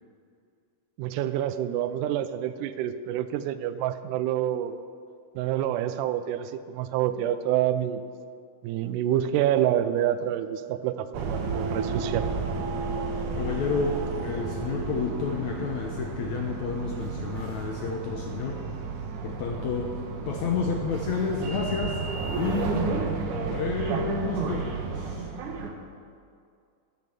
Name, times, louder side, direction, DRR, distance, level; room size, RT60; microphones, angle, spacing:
voice 1, 1.0-4.8 5.4-8.0 8.6-12.3, right 11 dB, 90° right, 11 dB, 1.8 m, -27 dB
sound 1, 11.1-25.7, right 4 dB, 70° right, 2.3 m, -32 dB
voice 2, 13.4-18.6 19.2-19.9 20.3-22.0 22.3-23.0 23.2-25.3, left 5 dB, 80° left, 1 dB, 1.7 m, -30 dB
12.5 x 8.4 x 6.5 m, 2.3 s
omnidirectional pair, 4.3 m